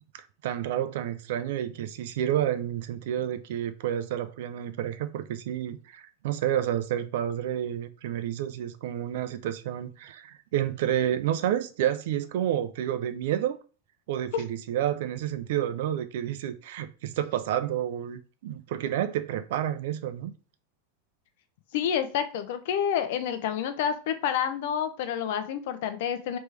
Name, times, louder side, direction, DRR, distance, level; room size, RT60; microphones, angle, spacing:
voice 1, 0.1-13.6 14.1-20.3, right 11 dB, 70° right, 0.5 m, -30 dB
voice 2, 21.7-26.4, left 8 dB, 65° left, 0.6 m, -28 dB
3.3 x 3.1 x 3.3 m
supercardioid pair, 130°, 0 cm